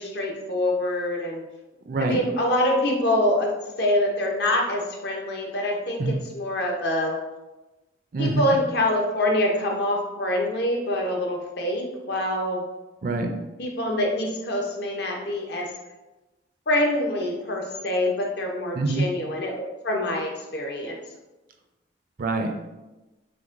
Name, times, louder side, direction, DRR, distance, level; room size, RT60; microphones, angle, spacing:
voice 1, 0.0-1.4 2.0-7.2 8.2-12.6 13.6-15.7 16.7-21.0, left 1 dB, 55° left, 0 dB, 0.7 m, -25 dB
voice 2, 1.9-2.2 6.0-6.1 8.1-8.4 13.0-13.3 18.7-19.1 22.2-22.5, right 3 dB, 45° right, 4 dB, 0.4 m, -25 dB
5.8 x 2.1 x 2.5 m, 1.1 s
head